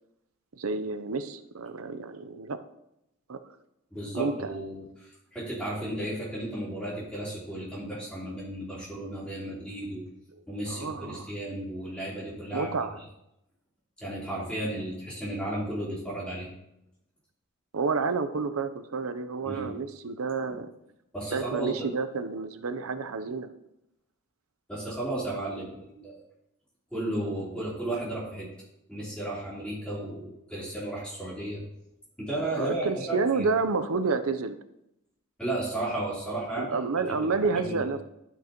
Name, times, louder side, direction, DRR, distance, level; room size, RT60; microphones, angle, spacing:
voice 1, 0.5-2.6 3.3-3.4 4.1-4.5 10.7-11.3 12.5-13.0 17.7-20.7 21.3-23.5 32.6-34.6 36.5-38.0, right 4 dB, 80° right, 11 dB, 0.7 m, -30 dB
voice 2, 3.9-10.1 10.5-12.7 14.0-16.5 19.4-19.7 21.1-21.9 24.7-26.2 26.9-28.5 28.9-31.6 32.2-33.5 35.4-36.8 37.2-37.9, right 1 dB, 5° left, -8 dB, 3.5 m, -34 dB
12.5 x 6.0 x 3.0 m, 0.84 s
head